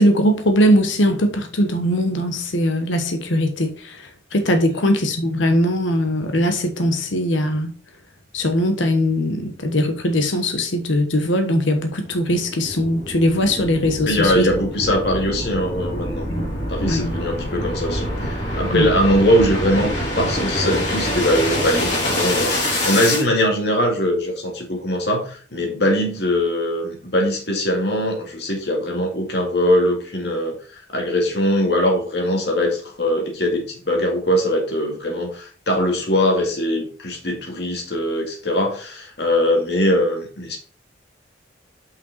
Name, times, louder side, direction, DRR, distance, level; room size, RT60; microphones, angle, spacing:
voice 1, 0.0-4.0 4.3-7.7 8.3-14.5 16.3-16.4 16.8-17.1 18.7-18.9, equal, 80° left, 1.1 m, -20 dB
sound 1, 11.7-23.2, left 1 dB, 40° left, 2.7 m, -26 dB
voice 2, 14.1-40.6, left 1 dB, 60° left, 2.1 m, -21 dB
5.7 x 5.5 x 4.0 m
head